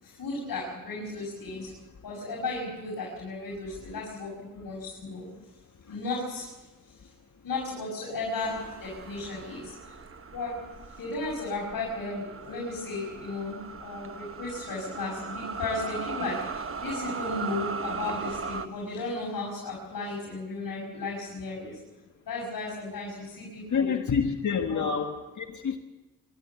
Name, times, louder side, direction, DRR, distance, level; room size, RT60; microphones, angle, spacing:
voice 1, 0.0-1.7 2.0-5.3 5.8-7.0 7.4-9.9 10.3-10.6 10.9-21.8 22.2-23.9 24.7-24.9, left 3 dB, 75° left, -5 dB, 6.1 m, -35 dB
sound 1, 8.4-18.7, right 5 dB, 40° right, 1.1 m, -38 dB
voice 2, 23.7-25.8, left 6 dB, 55° left, 5 dB, 1.5 m, -28 dB
25.5 x 13.0 x 8.1 m, 1.1 s
wide cardioid pair, 110°, 35 cm